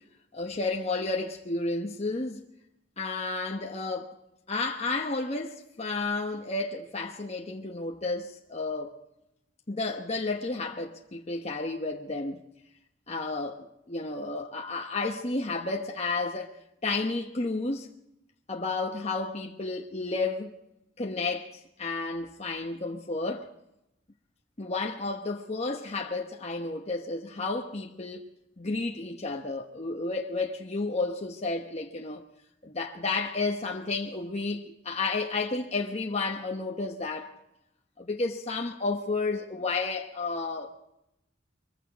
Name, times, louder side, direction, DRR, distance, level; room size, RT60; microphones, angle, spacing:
voice 1, 0.3-2.4 3.0-4.1 4.5-9.0 9.7-12.4 13.1-16.5 16.8-17.9 18.5-20.5 21.0-23.5 24.6-28.2 28.6-32.2 32.6-37.3 38.0-40.8, left 3 dB, 35° left, 1.0 m, -32 dB
22.5 x 15.0 x 4.1 m
head